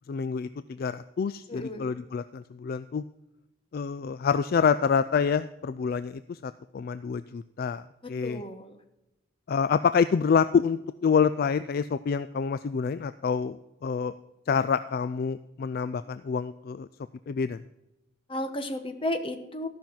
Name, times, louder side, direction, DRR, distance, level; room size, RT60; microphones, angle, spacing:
voice 1, 0.1-3.0 3.7-7.8 8.1-8.4 9.5-14.1 14.5-16.9 17.3-17.6, left 6 dB, 50° left, 13 dB, 0.3 m, -27 dB
voice 2, 1.5-1.9 8.0-8.8 15.9-16.1 18.3-19.7, left 1 dB, 30° left, 8 dB, 1.1 m, -33 dB
14.0 x 5.9 x 7.1 m, 0.92 s
head